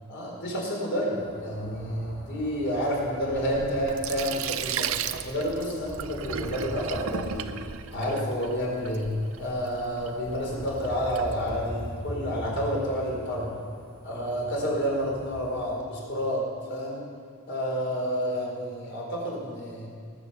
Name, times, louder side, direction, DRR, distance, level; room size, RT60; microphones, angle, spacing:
voice 1, 0.1-4.9 5.2-7.5 7.9-9.1 9.4-13.6 14.0-16.4 16.7-17.0 17.5-19.9, equal, 50° left, -3 dB, 4.0 m, -29 dB
sound 1, 1.1-15.8, equal, 25° left, 4.1 m, -43 dB
Sink (filling or washing), 3.2-12.0, right 8 dB, 65° right, 0.5 m, -36 dB
18.5 x 7.8 x 6.8 m, 2.2 s
head